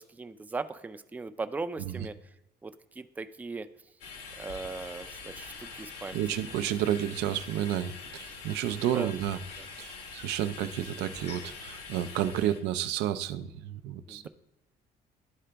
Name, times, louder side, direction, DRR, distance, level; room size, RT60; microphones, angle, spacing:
voice 1, 0.0-2.1 2.6-3.7 4.4-6.2 8.9-9.1 9.6-9.7 14.1-14.3, right 3 dB, 10° right, 10 dB, 0.4 m, -38 dB
sound 1, 4.0-12.6, left 5 dB, 80° left, 1.4 m, -44 dB
voice 2, 6.1-9.4 9.8-14.3, right 11 dB, 85° right, 12 dB, 0.5 m, -31 dB
11.5 x 3.8 x 3.4 m, 0.91 s
cardioid pair, 110°, 17 cm